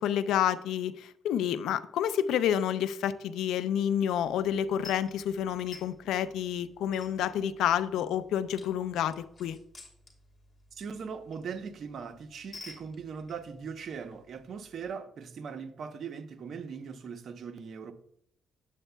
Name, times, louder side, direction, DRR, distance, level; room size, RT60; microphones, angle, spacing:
voice 1, 0.0-9.6, left 10 dB, 85° left, 0.5 m, -29 dB
sound 1, 4.1-14.9, left 3 dB, 25° left, 2.7 m, -54 dB
voice 2, 10.7-17.9, right 6 dB, 60° right, 0.8 m, -40 dB
8.9 x 8.2 x 2.2 m
cardioid pair, 90°, 0 cm